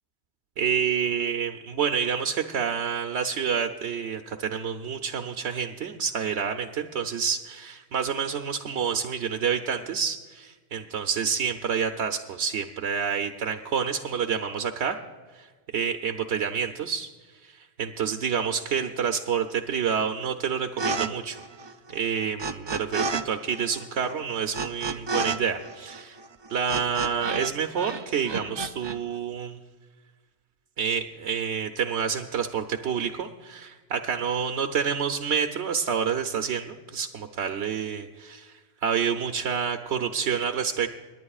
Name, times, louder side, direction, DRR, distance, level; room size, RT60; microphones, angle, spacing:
voice 1, 0.6-15.0 15.3-15.5 15.7-17.1 17.4-21.4 21.9-26.2 26.5-29.6 30.8-40.9, right 7 dB, 85° right, 5 dB, 1.0 m, -28 dB
sound 1, 20.8-21.1 21.3-23.2 23.5-27.5 27.8-29.0, right 3 dB, 35° right, 0.4 m, -31 dB
27.0 x 10.5 x 2.4 m, 1.4 s
omnidirectional pair, 1.1 m